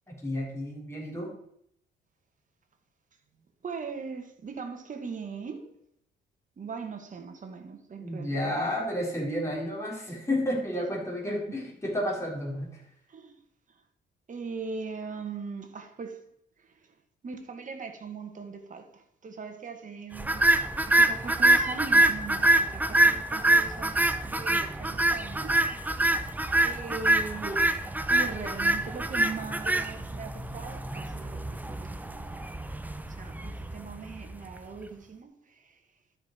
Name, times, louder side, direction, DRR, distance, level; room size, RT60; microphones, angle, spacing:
voice 1, 0.1-1.3 8.0-12.8, left 1 dB, 15° left, 3.6 m, -31 dB
voice 2, 3.6-5.8 6.6-8.5 11.5-11.6 13.1-13.4 14.3-16.3 16.6-16.9 17.2-20.5 20.8-25.9 26.6-27.7 28.1-32.5 33.1-35.8, right 5 dB, 40° right, 1.7 m, -40 dB
sound 1, 20.2-34.5, right 2 dB, 10° right, 0.7 m, -25 dB
12.5 x 5.4 x 4.4 m
cardioid pair, 90°, 20 cm